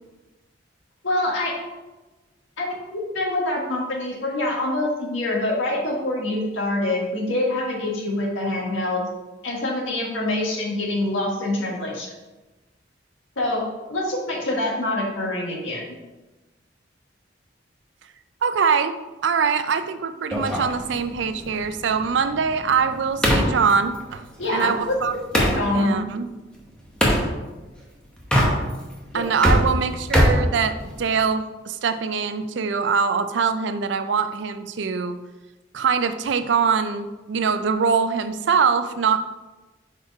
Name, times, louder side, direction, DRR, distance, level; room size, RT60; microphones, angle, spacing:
voice 1, 1.0-1.5 2.6-2.8 3.1-9.0 9.4-12.1 13.4-15.8 24.4-26.0 29.1-29.2, left 1 dB, 85° left, -2 dB, 1.6 m, -25 dB
voice 2, 18.4-19.0 19.2-24.2 24.5-25.1 25.5-26.3 29.1-35.2 35.7-39.2, right 6 dB, 65° right, 10 dB, 0.4 m, -23 dB
sound 1, 20.3-25.6 27.0-27.3 28.2-28.9 29.2-31.2, equal, 5° left, 0.9 m, -22 dB
4.9 x 4.4 x 4.7 m, 1.1 s
head